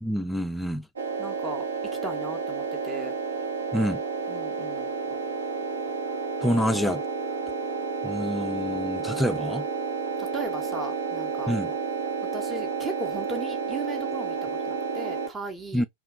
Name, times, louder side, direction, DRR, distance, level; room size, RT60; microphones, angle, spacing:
voice 1, 0.0-0.9 3.7-4.0 6.4-7.0 8.0-9.7 11.5-11.7 15.7-15.9, equal, 5° left, 0.3 m, -27 dB
sound 1, 1.0-15.3, right 5 dB, 70° right, 0.7 m, -31 dB
voice 2, 1.2-1.6 2.0-3.1 4.3-4.9 10.2-11.5 12.3-14.4 14.7-15.9, right 2 dB, 15° right, 0.7 m, -36 dB
2.7 x 2.3 x 3.5 m
figure-of-eight pair, 90°, 0 cm